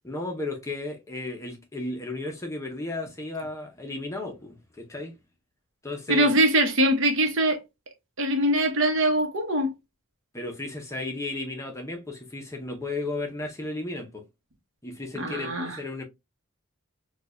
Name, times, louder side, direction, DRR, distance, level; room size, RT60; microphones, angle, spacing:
voice 1, 0.0-5.2 5.8-6.3 10.3-14.3 14.8-16.0, left 2 dB, 15° left, 0.7 m, -34 dB
voice 2, 6.1-7.6 8.2-9.7 15.2-15.8, right 1 dB, 55° right, 0.9 m, -22 dB
4.5 x 2.3 x 2.5 m
head